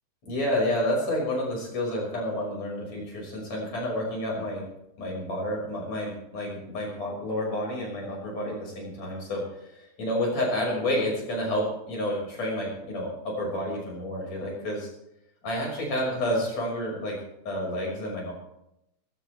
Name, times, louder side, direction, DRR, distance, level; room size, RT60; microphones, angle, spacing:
voice 1, 0.3-4.6 5.0-13.1 13.4-14.9 15.4-17.2 17.5-18.3, left 1 dB, 65° left, -2 dB, 7.4 m, -29 dB
20.5 x 17.0 x 3.5 m, 0.84 s
omnidirectional pair, 3.3 m